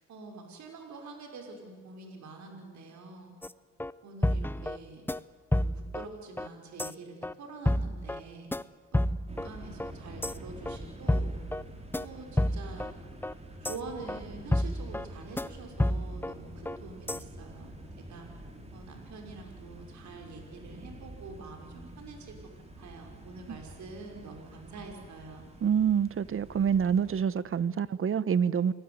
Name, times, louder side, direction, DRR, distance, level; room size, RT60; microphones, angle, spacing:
voice 1, 0.1-3.3 4.0-5.0 5.5-8.5 8.9-11.3 11.9-12.9 13.6-18.3 18.7-25.5, right 3 dB, 70° right, 3 dB, 5.7 m, -46 dB
sound 1, 3.4-3.5 3.8-3.9 4.2-4.8 5.1-5.2 5.5-6.1 6.4-6.5 6.8-6.9 7.2-7.3 7.7-8.2 8.5-8.6 8.9-9.5 9.8-9.9 10.2-10.3 10.7-10.8 11.1-11.6 11.9-12.0 12.4-12.9 13.2-13.3 13.6-13.8 14.1-14.2 14.5-15.1 15.4-15.5 15.8-16.3 16.7-16.8 17.1-17.2, left 1 dB, 5° left, 0.8 m, -29 dB
Wind(inside), 9.3-27.2, right 1 dB, 20° right, 4.5 m, -47 dB
voice 2, 25.6-28.7, right 7 dB, 45° right, 17 dB, 1.1 m, -26 dB
29.0 x 20.5 x 9.7 m, 1.5 s
cardioid pair, 90°, 30 cm